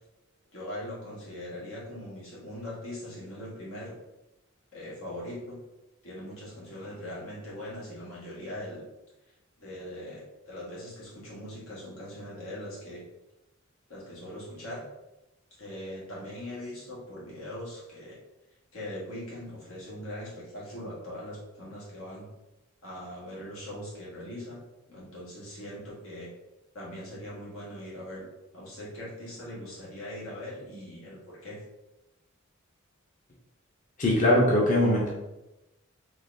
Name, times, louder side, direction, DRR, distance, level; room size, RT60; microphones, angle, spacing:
voice 1, 0.5-4.0 4.7-5.6 6.0-8.8 9.6-13.0 13.9-14.8 15.5-18.2 18.7-22.3 22.8-24.6 24.9-26.3 26.7-28.3 28.5-31.6, left 1 dB, 90° left, -6 dB, 1.5 m, -41 dB
voice 2, 34.0-35.1, left 1 dB, 40° left, -3 dB, 0.6 m, -21 dB
3.9 x 2.9 x 2.6 m, 0.98 s
head